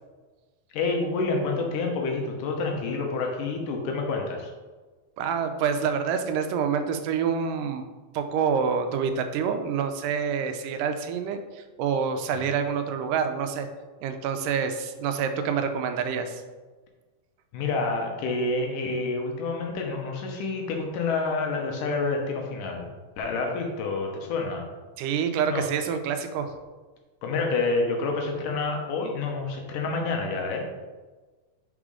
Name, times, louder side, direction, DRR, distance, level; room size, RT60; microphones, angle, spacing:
voice 1, 0.7-4.5 12.5-12.6 17.5-22.9 23.2-24.7 25.5-25.7 27.2-30.7, left 3 dB, 80° left, 2 dB, 2.5 m, -28 dB
voice 2, 5.2-7.8 8.1-13.7 14.0-16.4 25.0-26.5, right 6 dB, 85° right, 7 dB, 2.2 m, -27 dB
5.5 x 4.9 x 4.9 m, 1.3 s
omnidirectional pair, 3.8 m